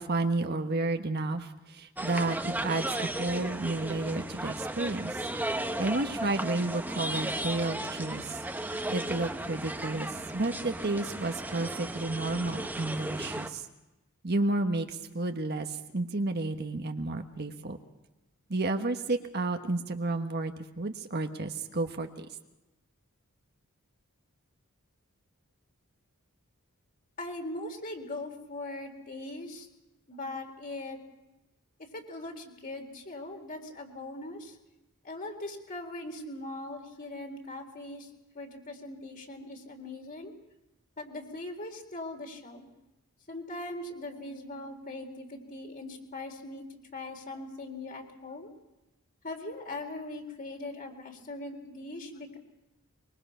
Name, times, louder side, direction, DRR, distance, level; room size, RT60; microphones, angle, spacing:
voice 1, 0.0-5.2 5.6-8.4 8.9-13.7 14.2-17.8 18.5-22.3, right 2 dB, 50° right, 6 dB, 1.4 m, -31 dB
sound 1, 2.0-13.5, right 1 dB, 10° right, 1.1 m, -35 dB
voice 2, 27.2-29.7 30.1-31.0 31.9-34.6 35.0-38.1 38.3-40.3 41.0-42.7 43.3-48.5 49.2-52.4, left 2 dB, 40° left, 3 dB, 3.8 m, -40 dB
24.5 x 23.0 x 5.7 m, 0.98 s
head